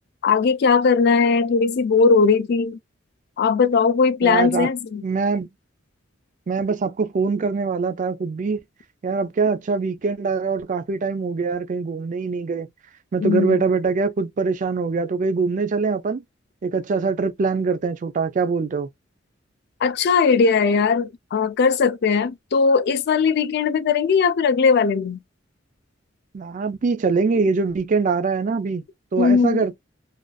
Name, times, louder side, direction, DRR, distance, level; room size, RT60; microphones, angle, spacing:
voice 1, 0.2-2.8 3.4-5.0 13.2-13.6 19.8-25.2 29.2-29.6, left 5 dB, 55° left, 0.4 m, -19 dB
voice 2, 4.2-4.7 5.0-5.5 6.5-8.6 9.0-12.7 13.1-16.2 16.6-18.9 26.3-28.8 29.1-29.8, right 4 dB, 40° right, 0.4 m, -23 dB
2.5 x 2.3 x 2.3 m
head